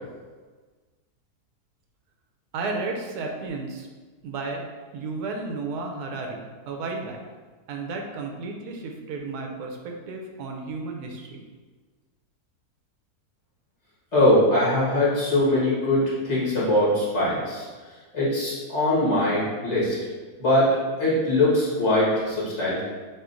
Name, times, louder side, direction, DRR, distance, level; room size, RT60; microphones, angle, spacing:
voice 1, 2.5-3.9 4.2-4.6 4.9-7.2 7.7-11.4, right 3 dB, 85° right, 2 dB, 1.1 m, -33 dB
voice 2, 14.1-17.7 18.1-20.0 20.4-20.7 21.0-22.8, left 1 dB, 50° left, -9 dB, 1.8 m, -22 dB
6.2 x 2.4 x 2.5 m, 1.4 s
omnidirectional pair, 1.7 m